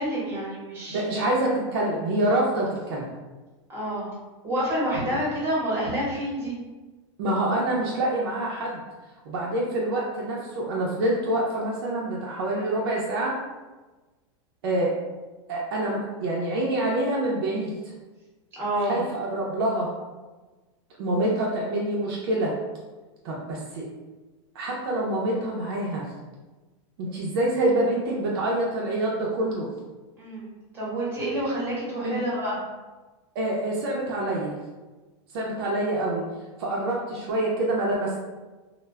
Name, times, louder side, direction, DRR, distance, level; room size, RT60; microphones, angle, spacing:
voice 1, 0.0-1.3 3.7-4.1 4.4-6.6 18.5-19.0 30.2-30.5 30.7-32.6, equal, 15° right, -7 dB, 0.8 m, -28 dB
voice 2, 0.9-3.0 7.2-8.8 9.3-13.4 14.6-14.9 15.5-17.7 18.9-19.9 21.0-22.5 23.2-23.9 24.5-26.0 27.0-29.7 32.0-32.2 33.3-34.6 35.3-36.2 36.6-38.2, right 1 dB, 50° right, -3 dB, 0.5 m, -26 dB
2.1 x 2.0 x 3.3 m, 1.2 s
supercardioid pair, 170°, 15 cm